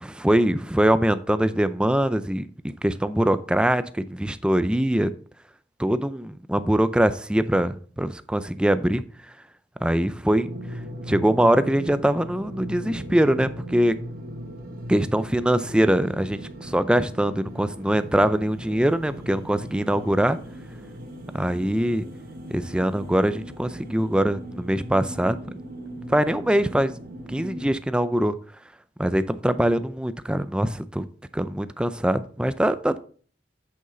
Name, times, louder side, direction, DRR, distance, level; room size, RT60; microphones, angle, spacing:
voice 1, 0.0-2.5 2.8-5.1 5.8-9.0 9.8-10.5 11.1-13.9 14.9-20.4 21.3-22.0 22.5-25.4 26.1-26.9 27.3-28.4 29.0-31.1 31.3-33.0, right 1 dB, 5° right, 12 dB, 0.4 m, -23 dB
sound 1, 10.4-27.8, equal, 55° right, 1.3 m, -38 dB
8.0 x 6.3 x 3.8 m, 0.43 s
head